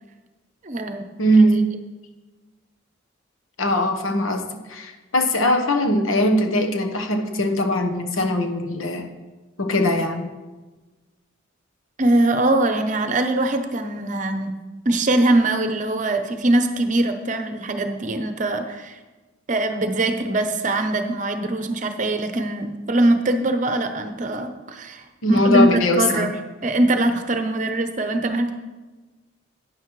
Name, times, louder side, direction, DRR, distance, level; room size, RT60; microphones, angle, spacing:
voice 1, 0.6-1.0 12.0-14.5 14.8-19.0 19.5-26.3 26.6-28.5, right 2 dB, 40° right, 7 dB, 0.8 m, -22 dB
voice 2, 1.2-1.7 3.6-9.1 9.6-10.3 25.2-26.3, equal, 90° left, 5 dB, 1.2 m, -20 dB
11.5 x 9.4 x 3.2 m, 1.2 s
head